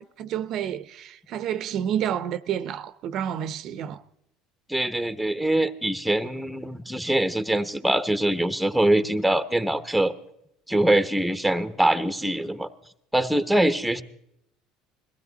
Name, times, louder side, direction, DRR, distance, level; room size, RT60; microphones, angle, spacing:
voice 1, 0.0-4.0, right 9 dB, 55° right, 0.7 m, -29 dB
voice 2, 4.7-10.1 10.7-12.7 13.1-14.0, right 1 dB, ahead, 0.9 m, -23 dB
21.5 x 15.5 x 4.0 m
supercardioid pair, 105°, 0 cm